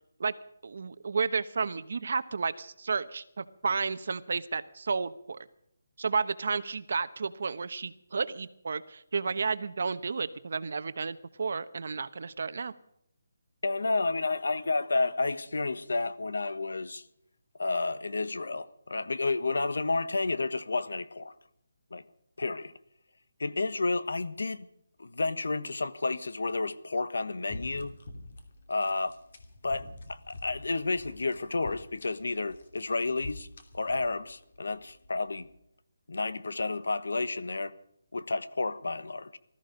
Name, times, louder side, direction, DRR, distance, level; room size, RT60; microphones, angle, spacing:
voice 1, 0.6-5.4 6.0-12.7, right 5 dB, 50° right, 1.1 m, -32 dB
voice 2, 13.6-17.0 17.6-21.3 21.9-22.0 22.4-22.7 23.4-24.7 25.0-27.9 28.7-29.2 29.6-33.5 33.7-35.5 36.1-37.7 38.1-39.4, left 3 dB, 90° left, 1.3 m, -31 dB
Chicken and cheese quesadilla, 27.5-35.6, left 2 dB, 45° left, 2.7 m, -47 dB
20.0 x 14.0 x 5.2 m
hypercardioid pair, 175°, 0 cm